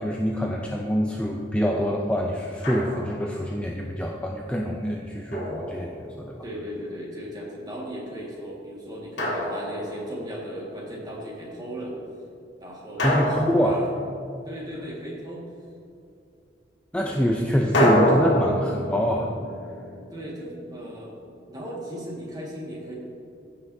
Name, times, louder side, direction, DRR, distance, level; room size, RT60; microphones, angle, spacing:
voice 1, 0.0-6.4 13.0-13.8 16.9-19.3, equal, 5° left, -1 dB, 0.4 m, -25 dB
Drum, 2.6-3.3 5.3-6.4 9.2-10.3 13.0-14.6 17.7-20.7, equal, 85° left, 1.7 m, -27 dB
voice 2, 6.4-12.0 12.6-13.4 13.6-13.9 14.4-15.5 20.1-21.1 21.5-22.9, equal, 20° right, -3 dB, 1.7 m, -36 dB
15.0 x 5.8 x 2.7 m, 2.5 s
head